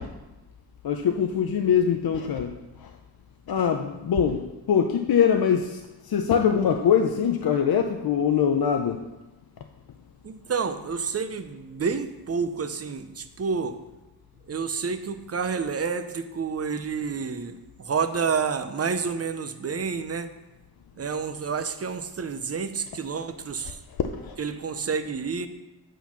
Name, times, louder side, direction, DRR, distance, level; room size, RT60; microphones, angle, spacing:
voice 1, 0.8-2.5 2.8-2.9 3.5-9.0 24.2-24.4, left 7 dB, 65° left, 5 dB, 0.6 m, -23 dB
voice 2, 10.2-13.8 14.5-20.3 21.0-23.8 24.4-25.5, right 5 dB, 40° right, 10 dB, 0.6 m, -29 dB
8.2 x 4.3 x 5.7 m, 1.1 s
wide cardioid pair, 85°, 39 cm